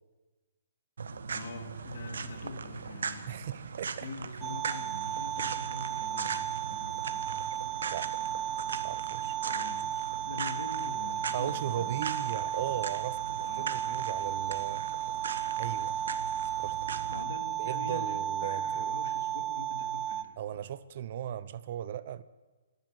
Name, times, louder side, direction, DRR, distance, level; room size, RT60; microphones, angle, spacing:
sound 1, 1.0-17.2, right 5 dB, 85° right, 1.6 m, -39 dB
voice 1, 1.3-3.4 4.0-7.3 9.5-9.9 10.2-11.9 13.4-13.8 17.1-20.4, left 4 dB, 60° left, 4 dB, 3.8 m, -44 dB
voice 2, 3.3-4.1 7.9-8.1 8.5-8.6 8.8-9.4 11.3-14.8 15.6-15.9 16.4-16.8 17.6-18.9 20.4-22.2, right 10 dB, 45° right, 15 dB, 0.8 m, -37 dB
sound 2, 4.4-20.2, right 10 dB, 20° right, 0.6 m, -34 dB
26.5 x 12.0 x 8.1 m, 1.3 s
hypercardioid pair, 165°, 0 cm